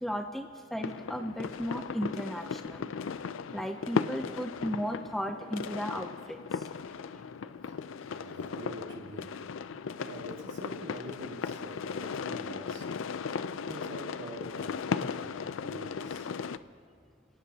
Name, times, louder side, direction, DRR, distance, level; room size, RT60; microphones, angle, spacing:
voice 1, 0.0-2.9 3.5-6.7 7.4-7.5, equal, ahead, 5 dB, 0.5 m, -35 dB
sound 1, 0.8-16.6, left 6 dB, 80° left, 0.4 m, -37 dB
voice 2, 7.7-9.3 10.0-12.8 13.6-16.3, right 1 dB, 75° right, 0 dB, 2.1 m, -45 dB
27.5 x 17.0 x 2.8 m, 2.3 s
head